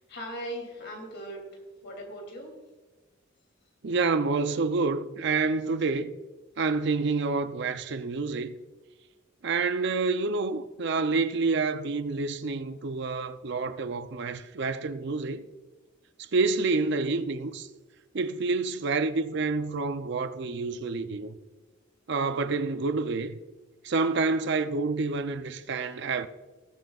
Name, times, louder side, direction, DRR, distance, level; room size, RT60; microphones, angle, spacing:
voice 1, 0.0-2.5, equal, 60° left, 3.0 m, -39 dB
voice 2, 3.8-6.2 6.6-8.6 9.4-15.4 16.3-17.7 18.1-21.3 22.1-23.3 23.8-26.3, right 4 dB, 60° right, 0.5 m, -28 dB
18.5 x 7.7 x 2.4 m
head